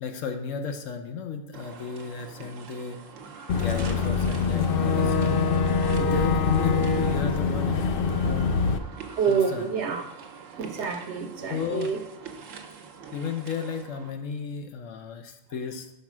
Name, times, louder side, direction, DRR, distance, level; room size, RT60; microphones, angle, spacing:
voice 1, 0.0-3.0 3.5-5.5 5.9-8.0 8.2-8.6 9.3-9.7 11.5-11.9 13.1-15.9, left 6 dB, 80° left, 1.1 m, -33 dB
sound 1, 1.5-14.1, right 6 dB, 85° right, 1.2 m, -44 dB
Boat Water vehicle / Engine, 3.5-8.8, left 5 dB, 60° left, 0.6 m, -24 dB
voice 2, 9.2-10.2 10.6-12.0, right 6 dB, 70° right, 1.0 m, -27 dB
5.6 x 4.3 x 6.1 m
omnidirectional pair, 1.3 m